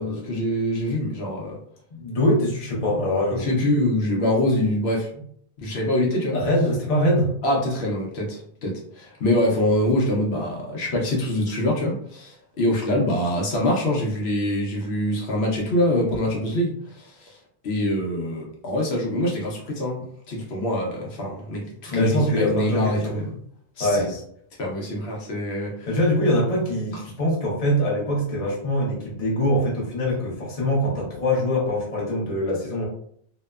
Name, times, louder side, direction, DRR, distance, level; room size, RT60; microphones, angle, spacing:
voice 1, 0.0-1.6 3.3-5.1 5.6-6.4 7.4-17.4 17.6-23.2 23.8-24.1 24.6-25.9, left 1 dB, 75° left, -2 dB, 0.9 m, -24 dB
voice 2, 1.9-3.5 6.3-7.3 21.9-23.3 23.8-24.2 25.9-32.9, left 1 dB, 40° left, -4 dB, 0.8 m, -23 dB
2.9 x 2.1 x 2.2 m, 0.65 s
omnidirectional pair, 1.1 m